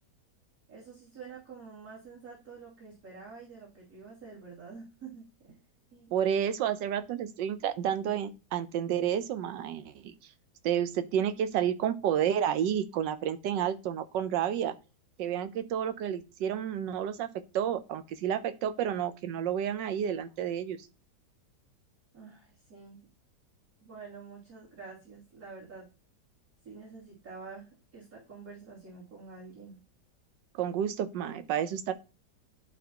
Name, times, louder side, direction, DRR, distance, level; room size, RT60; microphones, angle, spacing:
voice 1, 0.7-5.6 5.9-6.1 22.1-23.0 23.8-25.9 26.6-29.8, right 5 dB, 55° right, -9 dB, 3.3 m, -48 dB
voice 2, 6.1-10.1 10.6-14.7 15.2-17.3 17.5-20.8 30.5-31.9, right 9 dB, 85° right, 11 dB, 1.4 m, -30 dB
11.5 x 4.2 x 2.9 m, 0.31 s
omnidirectional pair, 1.9 m